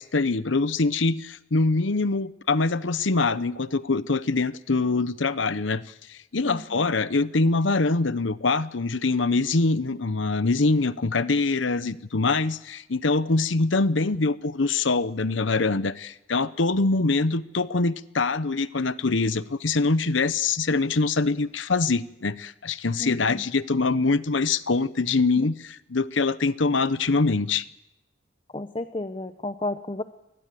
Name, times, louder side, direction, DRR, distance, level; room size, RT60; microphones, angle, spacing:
voice 1, 0.0-5.8 6.1-27.6, left 3 dB, 85° left, 1.0 m, -24 dB
voice 2, 6.4-6.8 23.0-23.4 25.4-25.5 28.5-30.0, left 2 dB, 25° left, 0.8 m, -32 dB
25.5 x 20.0 x 7.7 m
head